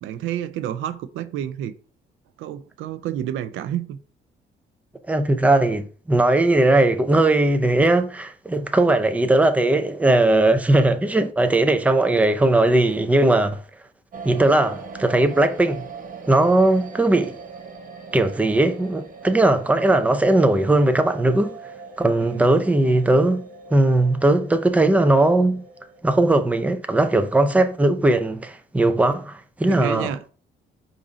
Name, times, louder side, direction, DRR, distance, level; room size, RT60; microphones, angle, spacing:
voice 1, 0.0-1.7 2.4-4.0 22.2-22.5 29.7-30.3, right 11 dB, 90° right, 0.4 m, -29 dB
voice 2, 5.1-13.6 14.2-15.8 16.3-17.4 18.1-21.6 22.0-23.5 23.7-25.6 26.0-30.3, right 2 dB, 5° right, 0.5 m, -19 dB
sound 1, 14.1-26.0, right 4 dB, 45° right, 0.8 m, -41 dB
4.8 x 2.6 x 4.0 m
cardioid pair, 90°, 20 cm